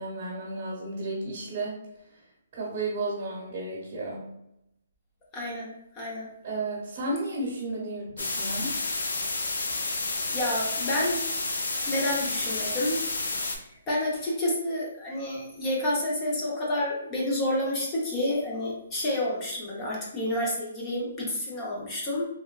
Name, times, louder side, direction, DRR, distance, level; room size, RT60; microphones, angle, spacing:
voice 1, 0.0-1.8 2.1-2.2 2.5-4.3 6.4-8.7, right 2 dB, 35° right, -5 dB, 1.0 m, -33 dB
voice 2, 5.3-5.7 5.9-6.3 10.3-11.2 11.9-13.0 13.9-22.3, left 1 dB, 20° left, -4 dB, 0.6 m, -29 dB
sound 1, 8.2-13.6, left 3 dB, 80° left, 0.5 m, -30 dB
3.0 x 2.1 x 2.3 m, 0.81 s
hypercardioid pair, 160°, 0 cm